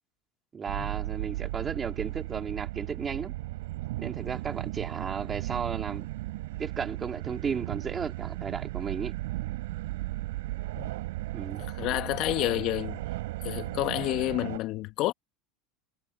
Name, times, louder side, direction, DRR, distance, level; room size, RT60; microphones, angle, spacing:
voice 1, 0.5-3.3 4.0-6.1 6.6-9.1 11.3-11.6, right 6 dB, 30° right, 3.9 m, -34 dB
sound 1, 0.7-14.6, right 18 dB, 80° right, 4.9 m, -35 dB
voice 2, 11.6-13.0 13.4-15.1, left 17 dB, 55° left, 2.0 m, -29 dB
hypercardioid pair, 100°, 0 cm